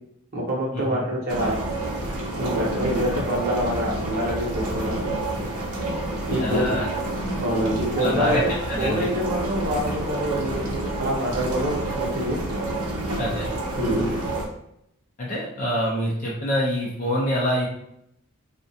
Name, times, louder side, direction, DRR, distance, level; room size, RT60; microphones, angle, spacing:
voice 1, 0.3-1.6 2.3-5.1 6.3-6.7 7.4-8.5 8.8-12.4 13.7-14.2, equal, 40° right, -4 dB, 0.7 m, -26 dB
sound 1, 1.3-14.5, right 2 dB, 85° right, 0.6 m, -29 dB
voice 2, 6.4-6.9 8.0-8.4 8.7-9.1 13.2-13.5 15.2-17.7, equal, 35° left, -4 dB, 0.4 m, -25 dB
2.3 x 2.1 x 2.6 m, 0.76 s
head